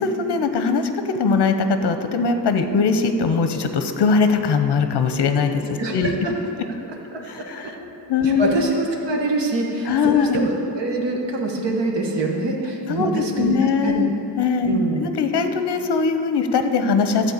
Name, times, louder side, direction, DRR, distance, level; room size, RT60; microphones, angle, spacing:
voice 1, 0.0-6.2 7.3-7.8 8.1-8.8 9.9-10.4 12.9-17.3, left 5 dB, 65° left, 8 dB, 0.8 m, -21 dB
voice 2, 5.8-6.3 7.1-7.2 8.2-14.0 14.7-15.0, right 2 dB, 70° right, 0 dB, 1.4 m, -24 dB
12.5 x 4.4 x 8.0 m, 3.0 s
wide cardioid pair, 150°, 44 cm